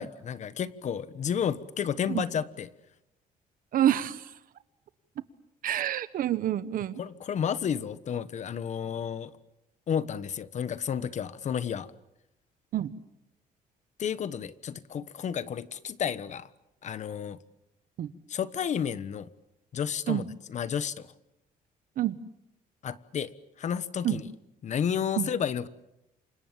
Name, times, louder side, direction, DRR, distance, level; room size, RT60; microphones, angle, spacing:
voice 1, 0.0-2.7 7.0-9.3 9.9-11.9 14.0-16.5 16.8-17.4 18.3-19.3 19.7-21.1 22.8-23.3 23.6-24.3 24.6-25.7, left 8 dB, 50° left, 15 dB, 1.2 m, -31 dB
voice 2, 3.7-4.2 5.6-7.0 12.7-12.9 18.0-18.1 20.1-20.2 22.0-22.1 24.0-24.2 25.2-25.3, right 12 dB, 65° right, 15 dB, 1.3 m, -27 dB
28.5 x 25.5 x 7.5 m, 0.88 s
cardioid pair, 125°, 15 cm